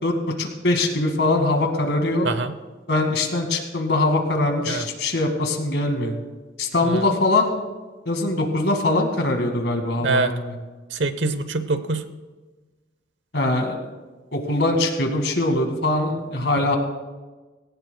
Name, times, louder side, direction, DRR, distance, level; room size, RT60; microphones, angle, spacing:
voice 1, 0.0-2.3 2.9-6.1 6.6-7.5 8.1-10.5 13.3-13.9 14.3-16.8, left 2 dB, 70° left, 4 dB, 2.1 m, -22 dB
voice 2, 2.2-2.6 4.7-4.9 6.9-7.0 10.0-10.3 10.9-12.0 16.4-16.5, right 3 dB, 80° right, 11 dB, 0.9 m, -24 dB
20.0 x 17.5 x 2.3 m, 1.3 s
head